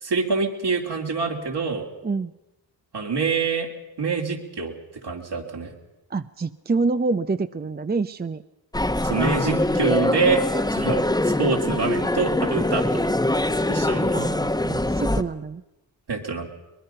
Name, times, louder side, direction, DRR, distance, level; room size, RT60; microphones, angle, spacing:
voice 1, 0.0-1.9 2.9-3.7 4.0-4.7 5.0-5.7 9.0-13.1 13.7-14.1 16.1-16.5, right 4 dB, 60° right, 1 dB, 3.1 m, -26 dB
voice 2, 6.1-8.4 14.1-15.6, right 3 dB, 20° right, 11 dB, 0.7 m, -26 dB
sound 1, 8.7-15.2, left 1 dB, 10° left, 1.2 m, -23 dB
24.0 x 20.5 x 5.7 m, 1.0 s
supercardioid pair, 45°, 45 cm